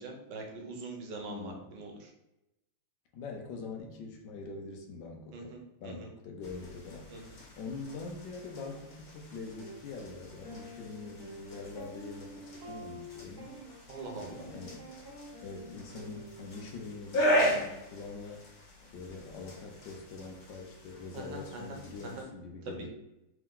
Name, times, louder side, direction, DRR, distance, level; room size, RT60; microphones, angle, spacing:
voice 1, 0.0-1.9 5.3-6.1 7.1-7.2 13.9-14.4 21.1-21.8 22.0-22.2 22.7-22.8, right 2 dB, 75° right, 2 dB, 1.3 m, -42 dB
voice 2, 1.2-1.8 3.1-7.1 7.6-13.5 14.2-14.9 15.4-18.4 18.9-22.9, left 4 dB, 70° left, 2 dB, 1.4 m, -44 dB
sound 1, 6.4-22.2, equal, 55° left, 1.5 m, -37 dB
sound 2, 9.6-9.8 10.4-16.8, right 1 dB, 25° right, 0.5 m, -48 dB
3.6 x 3.4 x 3.7 m, 0.92 s
omnidirectional pair, 2.1 m